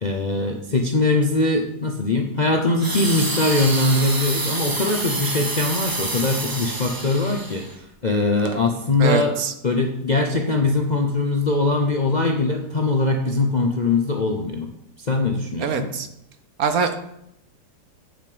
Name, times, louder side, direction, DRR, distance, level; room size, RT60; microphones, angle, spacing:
voice 1, 0.0-9.3 9.6-14.7 15.0-15.9, left 3 dB, 40° left, 2 dB, 0.6 m, -21 dB
sound 1, 2.8-7.8 8.4-8.6, right 2 dB, 25° right, 0.4 m, -28 dB
voice 2, 9.0-9.5 15.6-16.1 16.6-16.9, right 6 dB, 65° right, 8 dB, 1.2 m, -23 dB
8.6 x 7.2 x 5.0 m, 0.79 s
omnidirectional pair, 1.8 m